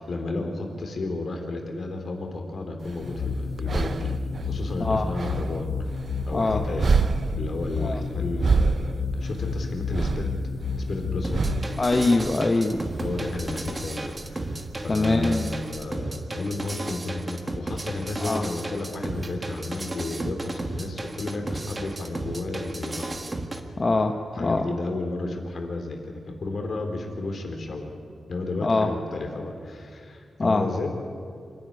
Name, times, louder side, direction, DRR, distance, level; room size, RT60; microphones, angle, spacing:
voice 1, 0.0-4.1 4.4-6.0 6.3-6.9 7.4-10.3 10.8-11.4 13.0-23.2 24.3-27.9 28.3-31.1, left 2 dB, 55° left, 3 dB, 3.4 m, -32 dB
sound 1, 2.8-15.8, right 5 dB, 55° right, 0.6 m, -30 dB
sound 2, 3.0-11.8, left 4 dB, 90° left, 1.3 m, -31 dB
sound 3, 11.2-23.6, right 2 dB, 25° right, 1.6 m, -34 dB
voice 2, 11.8-12.8 14.9-15.5 18.2-18.4 23.8-24.1 24.4-24.7 28.6-28.9 30.4-30.7, left 3 dB, 35° left, 4 dB, 1.1 m, -23 dB
26.0 x 12.0 x 9.7 m, 2.2 s
wide cardioid pair, 105°, 0 cm